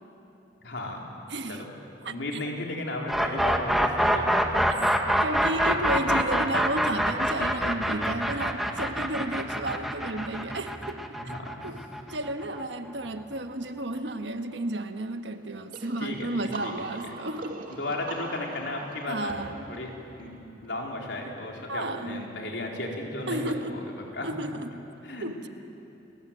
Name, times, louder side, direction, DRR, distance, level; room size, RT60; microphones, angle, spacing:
voice 1, 0.6-1.1 1.5-1.7 2.0-4.7 11.2-11.5 16.0-16.3 16.6-16.7 17.7-19.4 19.7-20.3 20.6-23.8 24.1-24.3 25.0-25.3, left 2 dB, 80° left, 0 dB, 4.1 m, -34 dB
voice 2, 1.3-1.7 2.0-2.1 5.2-11.0 11.6-11.8 12.1-17.6 19.1-19.7 21.7-22.3 23.3-23.8 24.2-24.8 25.2-25.5, right 1 dB, 75° right, 7 dB, 1.3 m, -32 dB
sound 1, 3.1-12.9, equal, ahead, 1.5 m, -25 dB
sound 2, 15.7-21.3, right 3 dB, 50° right, 2.5 m, -43 dB
29.5 x 20.5 x 9.0 m, 2.9 s
head